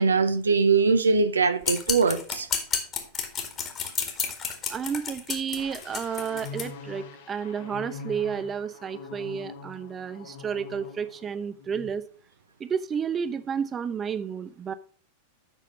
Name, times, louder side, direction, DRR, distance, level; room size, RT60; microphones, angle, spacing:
voice 1, 0.0-2.5, right 4 dB, 75° right, 0.7 m, -22 dB
sound 1, 1.6-6.7, left 6 dB, 30° left, 1.7 m, -31 dB
voice 2, 4.7-12.0 12.6-14.7, right 7 dB, 20° right, 0.5 m, -31 dB
sound 2, 5.6-11.3 11.6-11.9, left 4 dB, 55° left, 1.2 m, -43 dB
8.2 x 5.7 x 5.1 m
figure-of-eight pair, 90°, 0 cm